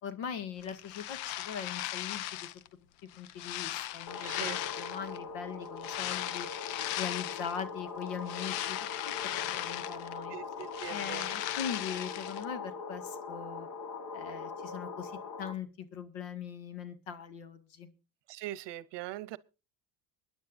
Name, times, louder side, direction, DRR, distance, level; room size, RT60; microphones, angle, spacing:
voice 1, 0.0-2.5 3.2-8.8 9.0-10.3 10.9-13.7 14.1-15.1 15.4-17.9, left 7 dB, 65° left, 2.1 m, -41 dB
sound 1, 0.6-2.7 3.1-5.2 5.8-7.6 8.0-10.2 10.5-12.4, left 14 dB, 80° left, 0.8 m, -37 dB
sound 2, 4.1-15.5, left 5 dB, 40° left, 1.5 m, -42 dB
voice 2, 4.2-4.6 10.3-11.3 18.3-19.4, right 16 dB, 55° right, 0.9 m, -41 dB
24.0 x 10.5 x 2.6 m
cardioid pair, 120°, 49 cm